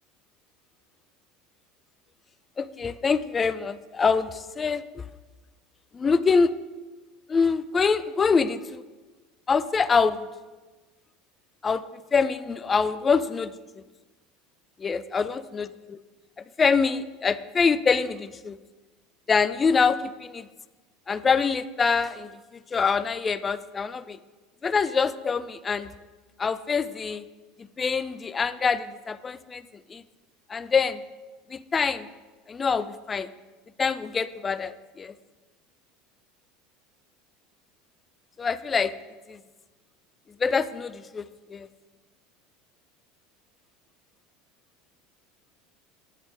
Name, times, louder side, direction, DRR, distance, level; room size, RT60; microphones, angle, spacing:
voice 1, 2.6-5.0 5.9-6.5 7.3-8.8 9.5-10.3 11.6-11.8 12.1-13.5 14.8-16.0 16.6-18.6 19.3-20.5 21.1-24.2 24.6-25.9 26.4-27.3 27.6-30.0 30.5-31.0 31.5-32.1 32.5-33.3 33.8-35.1 38.4-38.9 39.3-39.4 40.4-41.7, left 5 dB, 25° left, 15 dB, 0.4 m, -25 dB
9.1 x 8.0 x 3.6 m, 1.3 s
hypercardioid pair, 90°, 0 cm